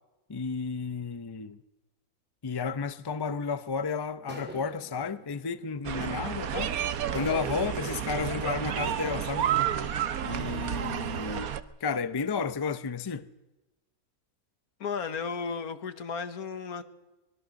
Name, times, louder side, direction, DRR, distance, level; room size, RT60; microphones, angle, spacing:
voice 1, 0.3-1.6 2.4-9.5 10.2-11.5 11.8-13.3, left 5 dB, 25° left, 0.5 m, -32 dB
sound 1, 3.4-3.7 4.3-6.4 7.1-8.9, right 1 dB, 5° right, 3.8 m, -47 dB
sound 2, 5.8-11.6, right 9 dB, 75° right, 1.4 m, -31 dB
voice 2, 14.8-16.8, left 5 dB, 80° left, 1.8 m, -34 dB
25.0 x 21.5 x 6.4 m
omnidirectional pair, 1.5 m